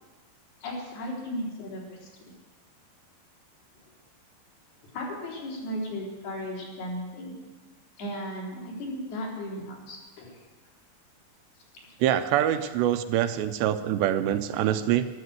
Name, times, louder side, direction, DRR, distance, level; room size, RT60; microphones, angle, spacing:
voice 1, 0.6-2.0 4.9-7.4 8.0-10.4 12.5-12.6, equal, 60° left, -3 dB, 5.7 m, -35 dB
voice 2, 12.0-15.1, right 11 dB, 85° right, 9 dB, 2.9 m, -25 dB
13.5 x 12.0 x 8.0 m, 1.3 s
omnidirectional pair, 5.0 m